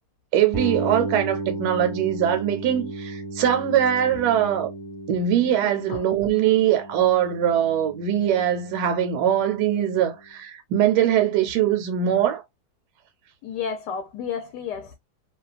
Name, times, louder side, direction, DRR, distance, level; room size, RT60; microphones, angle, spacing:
voice 1, 0.3-4.7 5.1-12.4, right 10 dB, 75° right, 1.1 m, -22 dB
sound 1, 0.5-10.2, right 3 dB, ahead, 0.6 m, -34 dB
voice 2, 13.4-15.0, left 7 dB, 80° left, 1.2 m, -31 dB
2.8 x 2.2 x 2.4 m
omnidirectional pair, 1.9 m